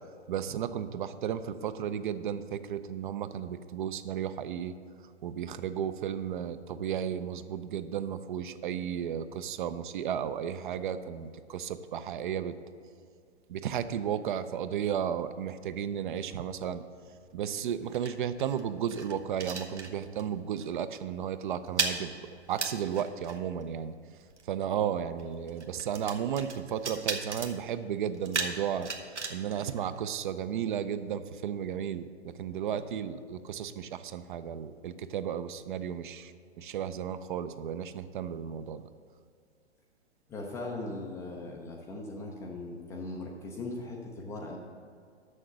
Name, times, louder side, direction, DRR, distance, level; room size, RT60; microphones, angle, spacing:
voice 1, 0.3-4.7 5.2-12.6 13.5-16.8 17.3-23.9 24.5-28.9 29.3-38.8, right 9 dB, 45° right, 12 dB, 0.5 m, -34 dB
sound 1, 17.0-20.3 20.6-20.9 21.1-30.5, right 4 dB, 90° right, 1.1 m, -38 dB
voice 2, 40.3-44.6, left 2 dB, 10° left, -1 dB, 0.3 m, -39 dB
6.6 x 6.5 x 7.6 m, 2.3 s
figure-of-eight pair, 115°, 34 cm